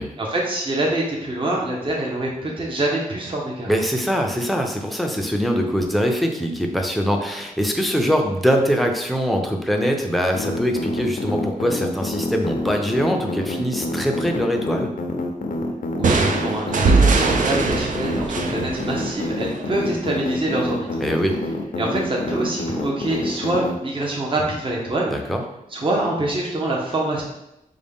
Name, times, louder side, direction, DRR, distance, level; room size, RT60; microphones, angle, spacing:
voice 1, 0.2-3.9 16.0-21.0 21.8-25.3 25.7-27.2, right 2 dB, 35° right, -2 dB, 0.8 m, -25 dB
voice 2, 3.7-14.9 21.0-21.4 25.1-25.4, equal, ahead, 2 dB, 0.5 m, -22 dB
sound 1, 10.3-23.8, left 2 dB, 70° left, 0.6 m, -27 dB
sound 2, 16.0-19.7, right 4 dB, 60° right, 0.5 m, -21 dB
5.1 x 2.3 x 3.5 m, 0.85 s
wide cardioid pair, 105°, 15 cm